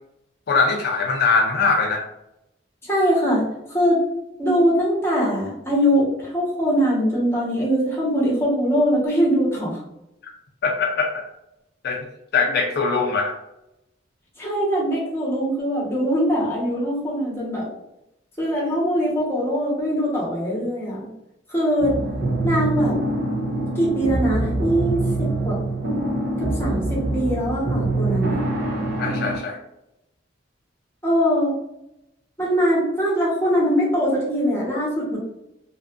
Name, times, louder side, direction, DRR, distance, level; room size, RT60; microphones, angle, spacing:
voice 1, 0.5-2.0 10.2-10.3 10.6-11.1 11.8-12.0 12.3-13.3 29.0-29.6, left 4 dB, 60° left, 1 dB, 0.4 m, -21 dB
voice 2, 2.8-3.4 3.7-4.0 4.4-9.8 14.4-17.7 18.4-21.1 21.5-22.0 22.4-23.0 23.8-25.6 26.4-28.4 31.0-31.6 32.4-35.2, equal, 15° left, -5 dB, 0.9 m, -22 dB
sound 1, 21.8-29.4, right 2 dB, 60° right, 0.6 m, -24 dB
2.6 x 2.4 x 2.4 m, 0.86 s
head